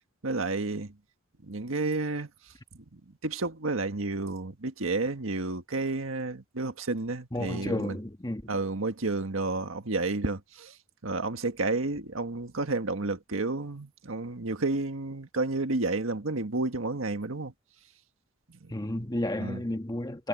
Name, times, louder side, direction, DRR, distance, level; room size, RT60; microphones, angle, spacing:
voice 1, 0.2-0.9 1.4-2.3 3.2-8.0 8.5-10.7 11.0-17.5 19.4-19.6, right 3 dB, 80° right, 1.6 m, -31 dB
voice 2, 7.3-8.5 18.7-20.3, left 1 dB, 20° left, 1.4 m, -32 dB
head